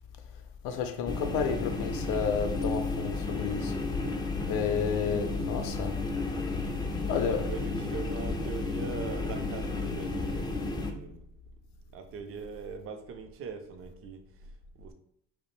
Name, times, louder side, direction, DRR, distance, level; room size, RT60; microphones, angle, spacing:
voice 1, 0.6-3.8 4.4-6.0 7.0-7.4, left 6 dB, 80° left, 0.5 m, -31 dB
sound 1, 1.1-10.9, left 3 dB, 15° left, 0.3 m, -32 dB
voice 2, 7.0-11.3 11.9-14.9, right 5 dB, 45° right, 0.5 m, -42 dB
2.5 x 2.0 x 3.0 m
supercardioid pair, 75°, 32 cm